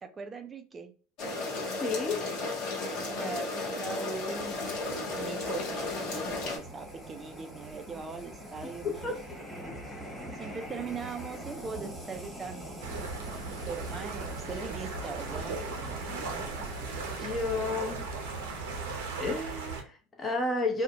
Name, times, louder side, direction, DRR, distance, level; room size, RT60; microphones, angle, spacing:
voice 1, 0.0-0.9 2.9-4.7 5.1-9.2 10.4-12.8 13.3-13.4 13.6-15.6, right 4 dB, 30° right, 7 dB, 0.3 m, -40 dB
sound 1, 1.2-6.6, left 3 dB, 65° left, 1.0 m, -34 dB
voice 2, 1.8-2.2 8.6-8.7 9.0-9.2 17.2-18.0 19.2-20.8, left 2 dB, 25° left, 2 dB, 0.7 m, -31 dB
sound 2, 4.0-19.4, right 1 dB, 5° right, 1.1 m, -44 dB
sound 3, 12.8-19.8, right 4 dB, 85° right, 0.6 m, -37 dB
2.5 x 2.1 x 2.8 m, 0.38 s
supercardioid pair, 95°, 0 cm